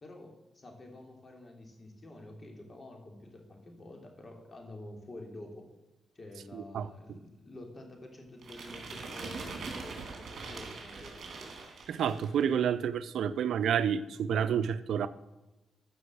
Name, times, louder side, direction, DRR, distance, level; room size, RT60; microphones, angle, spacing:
voice 1, 0.0-5.7 6.1-11.4, left 1 dB, 35° left, 3.3 m, -49 dB
voice 2, 6.5-6.9 11.9-15.1, right 8 dB, 85° right, 0.6 m, -29 dB
sound 1, 8.4-12.4, right 4 dB, 60° right, 3.5 m, -42 dB
14.0 x 6.2 x 8.0 m
cardioid pair, 90°, 0 cm